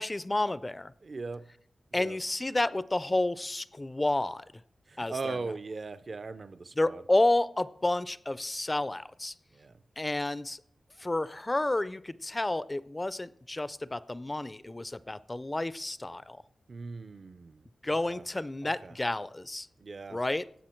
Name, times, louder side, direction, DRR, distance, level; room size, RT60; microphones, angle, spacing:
voice 1, 0.0-0.9 1.9-4.5 5.0-5.4 6.8-9.3 10.0-10.6 11.0-16.4 17.8-19.7 20.1-20.4, left 2 dB, 20° left, 17 dB, 0.3 m, -30 dB
voice 2, 1.0-1.5 1.9-2.2 4.9-7.0 9.5-9.8 16.7-17.6 18.1-18.2 18.6-19.0 19.8-20.2, right 4 dB, 45° right, 13 dB, 0.4 m, -39 dB
17.5 x 6.8 x 4.4 m, 0.67 s
wide cardioid pair, 125°, 0 cm